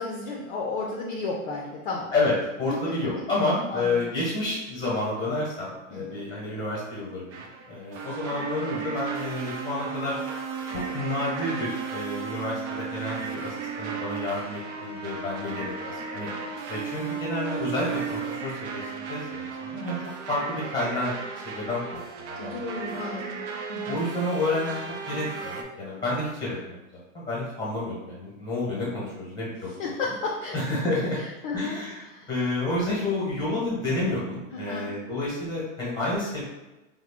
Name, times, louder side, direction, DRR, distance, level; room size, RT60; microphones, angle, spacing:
voice 1, 0.0-2.1 3.7-4.0 5.9-6.2 22.4-24.0 29.8-32.3 34.5-34.9, left 3 dB, 40° left, -2 dB, 0.4 m, -33 dB
voice 2, 2.1-10.2 10.7-16.3 16.7-20.0 20.3-21.1 21.4-22.6 22.9-23.0 23.9-24.8 25.1-29.7 30.5-31.2 31.5-32.0 32.3-36.4, left 2 dB, 10° left, -5 dB, 1.0 m, -30 dB
sound 1, 7.3-25.6, right 5 dB, 55° right, 0.6 m, -35 dB
3.5 x 2.1 x 3.5 m, 1.1 s
supercardioid pair, 155°, 42 cm